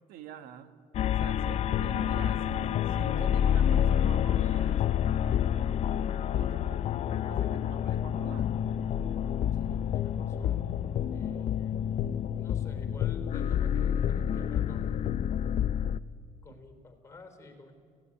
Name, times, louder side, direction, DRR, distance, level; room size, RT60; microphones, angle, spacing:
voice 1, 0.1-0.7 1.2-5.8 6.3-8.5, right 9 dB, 80° right, 11 dB, 1.5 m, -47 dB
sound 1, 0.9-16.0, left 9 dB, 45° left, 0.6 m, -28 dB
voice 2, 9.6-10.7 11.1-11.9 12.4-14.9 16.4-17.7, left 3 dB, 20° left, 7 dB, 3.7 m, -52 dB
26.5 x 16.5 x 9.9 m, 2.2 s
cardioid pair, 125°, 15 cm